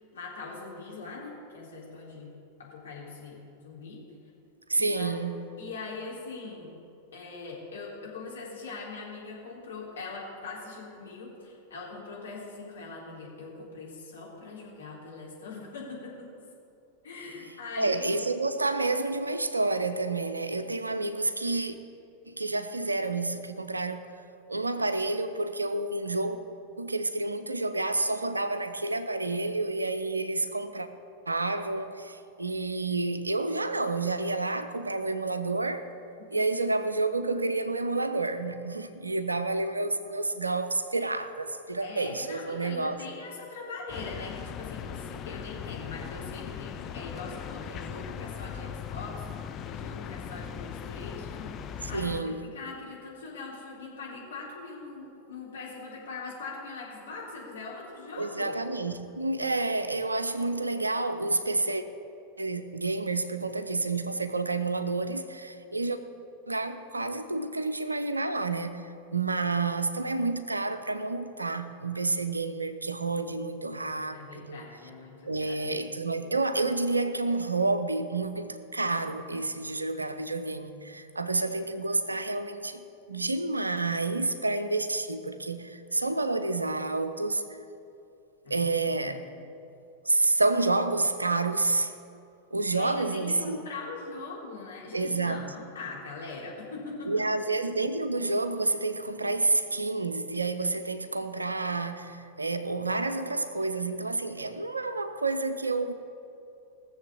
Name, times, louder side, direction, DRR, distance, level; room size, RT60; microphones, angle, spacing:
voice 1, 0.0-2.3 2.6-3.4 3.6-4.0 4.8-5.1 5.6-6.7 7.1-16.3 17.0-18.2 41.8-58.6 73.7-75.8 88.4-88.7 89.0-89.5 92.7-97.1, left 3 dB, 65° left, 3.8 m, -42 dB
voice 2, 4.7-5.4 17.8-21.7 22.2-24.1 24.5-26.4 26.8-30.9 31.3-35.8 36.3-43.0 51.8-52.5 58.2-61.8 62.4-66.0 66.5-74.7 75.3-87.6 88.5-89.2 90.0-91.9 92.5-93.6 94.9-95.4 97.1-105.9, right 3 dB, 80° right, 0.7 m, -29 dB
sound 1, 43.9-52.2, left 8 dB, 30° left, 0.6 m, -39 dB
18.0 x 7.2 x 6.9 m
figure-of-eight pair, 90°, 0 cm